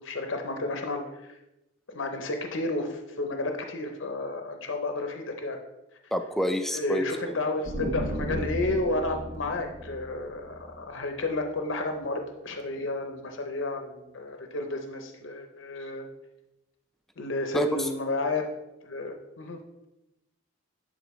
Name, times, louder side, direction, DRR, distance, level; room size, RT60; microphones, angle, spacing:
voice 1, 0.0-1.3 1.9-5.6 6.7-16.1 17.2-18.5 18.9-19.9, left 2 dB, 65° left, 4 dB, 0.7 m, -31 dB
voice 2, 6.1-7.1 17.5-17.9, left 1 dB, ahead, 7 dB, 0.3 m, -27 dB
sound 1, 7.6-11.3, equal, 75° right, 0.9 m, -35 dB
10.0 x 4.0 x 3.1 m, 0.95 s
head